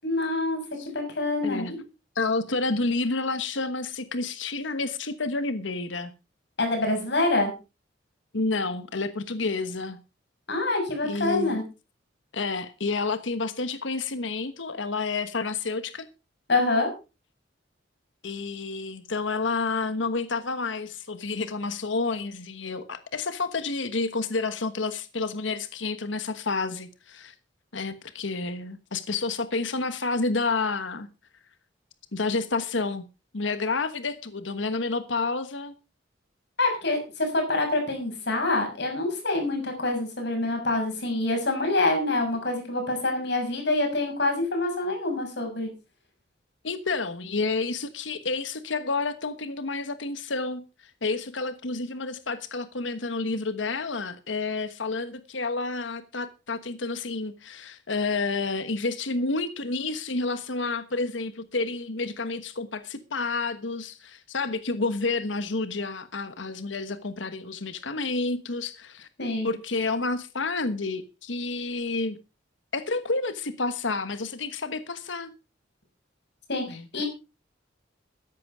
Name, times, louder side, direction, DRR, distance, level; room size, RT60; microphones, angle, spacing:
voice 1, 0.0-1.8 6.6-7.5 10.5-11.6 16.5-16.9 36.6-45.7 69.2-69.5 76.5-76.6 76.9-77.1, left 2 dB, 65° left, 6.5 m, -26 dB
voice 2, 2.1-6.1 8.3-10.0 11.0-11.6 12.3-16.1 18.2-27.3 27.7-31.1 32.1-33.1 33.3-35.7 46.6-69.1 69.4-72.2 72.7-75.3 76.7-77.0, left 3 dB, 85° left, 1.2 m, -30 dB
13.5 x 10.5 x 4.8 m
head